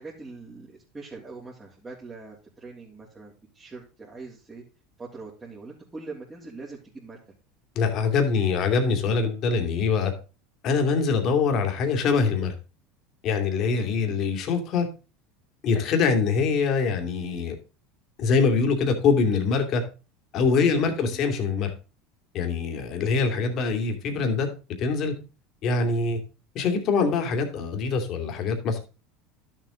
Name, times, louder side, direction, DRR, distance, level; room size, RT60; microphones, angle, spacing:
voice 1, 0.0-4.6 5.0-7.2 13.8-14.2 20.4-21.2, right 3 dB, 15° right, -5 dB, 3.1 m, -43 dB
voice 2, 7.8-10.1 10.6-12.5 13.2-14.9 15.6-17.6 18.2-19.8 20.3-21.7 22.3-24.5 24.8-25.1 25.6-26.2 26.5-28.8, left 5 dB, 50° left, 4 dB, 2.6 m, -24 dB
12.0 x 7.4 x 3.8 m, 0.32 s
supercardioid pair, 105°, 0 cm